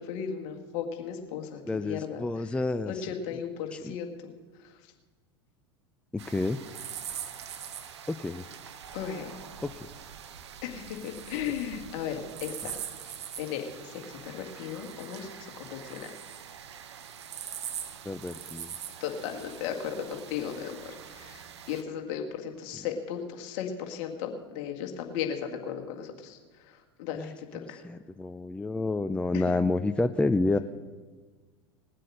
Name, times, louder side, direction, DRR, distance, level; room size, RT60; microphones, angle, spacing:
voice 1, 0.0-2.5 2.9-4.3 8.9-9.3 10.6-12.8 13.4-16.1 19.0-21.4 21.7-26.4 26.7-27.8 29.3-29.4, left 8 dB, 55° left, 4 dB, 1.9 m, -36 dB
voice 2, 1.7-3.1 3.8-4.0 6.1-6.6 8.1-8.4 9.6-9.9 18.1-18.7 27.1-27.3 27.8-30.6, left 2 dB, 5° left, 11 dB, 0.5 m, -29 dB
sound 1, 6.2-21.8, right 8 dB, 75° right, 0.9 m, -43 dB
20.0 x 7.6 x 6.3 m, 1.4 s
hypercardioid pair, 85°, 14 cm